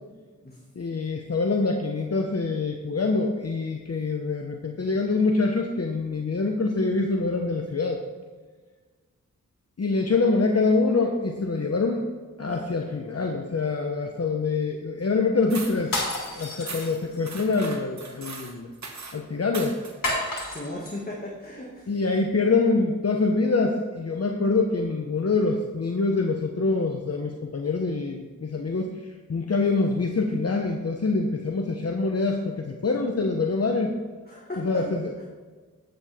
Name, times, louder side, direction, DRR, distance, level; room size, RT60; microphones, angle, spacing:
voice 1, 0.8-8.0 9.8-12.0 12.4-15.9 16.3-18.7 19.1-19.8 21.9-28.9 29.3-33.9 34.6-35.1, left 3 dB, 50° left, 2 dB, 1.0 m, -25 dB
sound 1, 15.5-15.8 16.7-16.9 17.2-19.2 19.5-20.0, right 3 dB, 60° right, 1.4 m, -39 dB
sound 2, 15.8-17.3 20.0-20.9, left 1 dB, 85° left, 2.9 m, -30 dB
voice 2, 20.5-21.9 34.3-34.8 35.2-35.3, left 1 dB, 30° left, -4 dB, 2.1 m, -36 dB
10.5 x 8.7 x 3.6 m, 1.4 s
cardioid pair, 55°, 32 cm